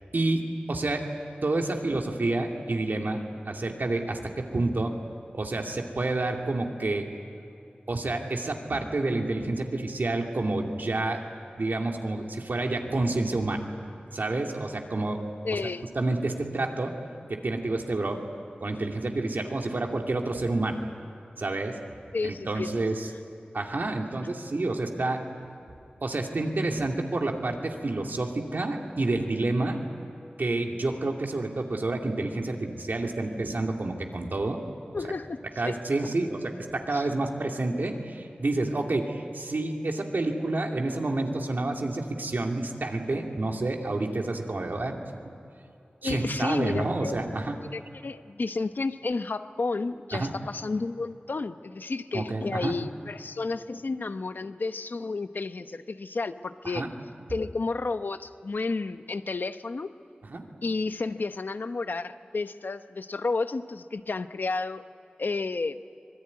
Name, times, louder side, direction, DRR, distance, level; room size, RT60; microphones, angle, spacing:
voice 1, 0.1-1.1 1.4-3.2 3.5-4.9 5.3-7.0 7.9-11.2 11.6-13.6 14.1-15.2 15.5-16.9 17.3-18.2 18.6-20.8 21.4-21.8 22.2-23.1 23.5-25.2 26.0-29.8 30.4-34.6 35.6-45.0 46.0-47.6 50.1-50.3 52.1-52.7 56.6-56.9 60.2-60.4, right 2 dB, 80° right, 2 dB, 2.6 m, -29 dB
voice 2, 15.4-15.8 22.1-22.7 34.9-35.8 36.0-36.1 36.9-37.1 46.0-47.2 47.5-56.9 57.3-59.9 60.6-64.8 65.2-65.8, left 3 dB, 80° left, 10 dB, 0.8 m, -31 dB
25.0 x 21.5 x 9.6 m, 2.6 s
wide cardioid pair, 70°, 3 cm